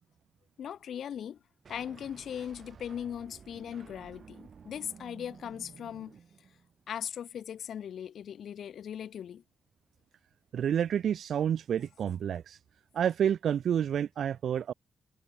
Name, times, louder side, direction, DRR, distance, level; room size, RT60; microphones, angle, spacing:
voice 1, 0.6-1.4 1.7-6.2 6.9-9.4, left 9 dB, 80° left, 1.9 m, -39 dB
sound 1, 1.6-6.8, right 6 dB, 55° right, 5.1 m, -53 dB
voice 2, 10.5-12.6 12.9-14.7, right 9 dB, 80° right, 0.5 m, -29 dB
cardioid pair, 110°, 0 cm